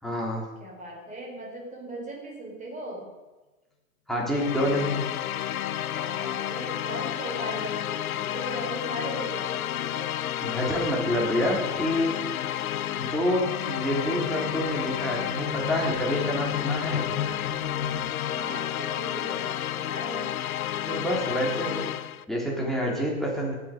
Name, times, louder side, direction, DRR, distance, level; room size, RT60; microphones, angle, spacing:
voice 1, 0.0-0.4 4.1-5.0 10.4-12.2 13.0-17.0 20.9-21.9 22.3-23.5, equal, ahead, -3 dB, 3.6 m, -27 dB
voice 2, 0.6-3.1 5.9-10.2 18.3-20.3, right 1 dB, 20° right, -1 dB, 4.1 m, -38 dB
sound 1, 4.3-22.3, left 11 dB, 90° left, 0.6 m, -31 dB
sound 2, 9.7-18.6, left 7 dB, 45° left, 1.7 m, -37 dB
18.5 x 7.0 x 5.2 m, 1.2 s
hypercardioid pair, 120°, 41 cm